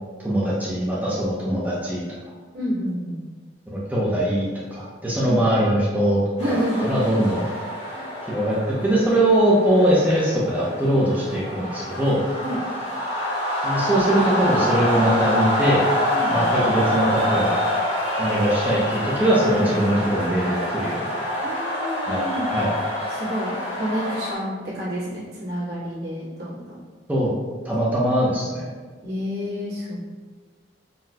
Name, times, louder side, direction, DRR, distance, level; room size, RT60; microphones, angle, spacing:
voice 1, 0.2-2.0 3.7-6.2 6.5-7.4 8.3-8.6 8.8-12.2 13.6-15.8 16.3-17.6 18.2-21.1 22.1-22.2 22.5-22.7 27.1-27.3 27.6-28.7, right 1 dB, 10° right, -7 dB, 0.5 m, -21 dB
voice 2, 2.5-3.2 5.3-5.4 6.4-7.2 7.9-8.1 12.4-12.6 16.1-16.5 21.4-22.5 23.1-26.8 29.0-30.0, equal, 65° right, -9 dB, 1.3 m, -29 dB
sound 1, 6.4-24.3, equal, 35° left, 0.9 m, -26 dB
3.9 x 2.1 x 2.7 m, 1.5 s
head